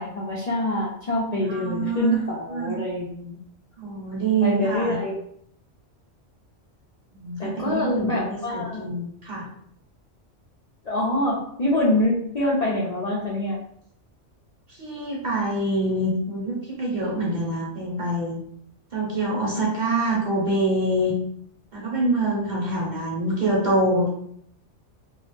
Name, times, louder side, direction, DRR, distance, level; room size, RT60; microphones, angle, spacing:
voice 1, 0.0-3.4 4.4-5.2 7.4-8.9 10.8-13.6, left 1 dB, 50° left, -7 dB, 0.5 m, -25 dB
voice 2, 1.5-2.2 2.5-2.8 3.8-5.0 7.1-9.5 14.8-18.4 18.9-21.1 21.7-24.1, right 2 dB, 45° right, -4 dB, 0.7 m, -25 dB
2.3 x 2.0 x 3.1 m, 0.69 s
omnidirectional pair, 1.2 m